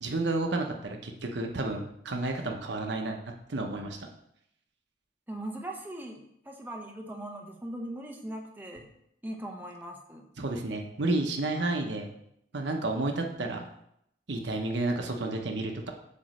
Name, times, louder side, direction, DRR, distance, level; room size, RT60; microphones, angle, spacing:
voice 1, 0.0-3.2 3.5-4.0 10.4-12.1 12.5-13.7 14.3-15.9, right 2 dB, 70° right, 3 dB, 0.9 m, -31 dB
voice 2, 5.3-8.9 9.2-10.3, right 1 dB, 10° right, 2 dB, 0.8 m, -40 dB
8.5 x 3.0 x 6.2 m, 0.75 s
head